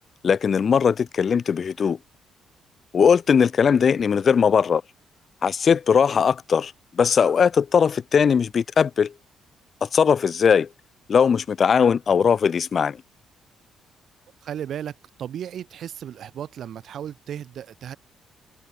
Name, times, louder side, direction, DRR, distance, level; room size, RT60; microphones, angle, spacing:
voice 1, 0.2-2.0 2.9-4.8 5.4-9.1 9.8-10.7 11.1-13.0, left 6 dB, 50° left, 0.8 m, -19 dB
voice 2, 14.4-18.0, right 9 dB, 65° right, 0.9 m, -35 dB
cardioid pair, 90°, 0 cm